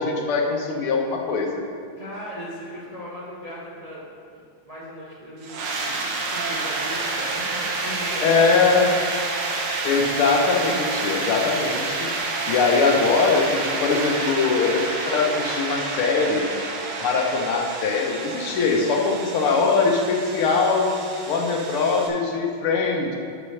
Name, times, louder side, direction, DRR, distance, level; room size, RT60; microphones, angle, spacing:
voice 1, 0.0-1.6 8.2-8.9 9.8-12.1 12.4-16.5 17.0-20.9 21.3-23.2, left 4 dB, 80° left, 1 dB, 1.8 m, -22 dB
voice 2, 2.0-4.0 4.3-8.3, equal, 25° right, -6 dB, 0.8 m, -38 dB
sound 1, 5.4-22.1, right 3 dB, 90° right, 1.9 m, -29 dB
6.4 x 5.9 x 6.4 m, 2.4 s
omnidirectional pair, 2.4 m